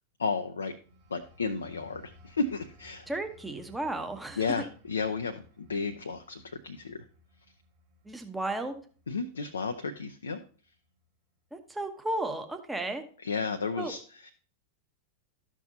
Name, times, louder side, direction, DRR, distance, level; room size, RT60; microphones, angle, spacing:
voice 1, 0.2-0.7 1.1-3.1 4.4-7.0 9.1-10.4 13.2-14.3, left 4 dB, 75° left, 7 dB, 0.5 m, -33 dB
sound 1, 0.7-11.1 11.5-11.8, left 1 dB, 55° right, 2.9 m, -59 dB
voice 2, 3.1-4.7 8.0-8.7 11.5-13.0 13.8-13.9, right 2 dB, 5° right, 6 dB, 1.0 m, -34 dB
12.5 x 6.0 x 2.7 m, 0.42 s
figure-of-eight pair, 90°, 0 cm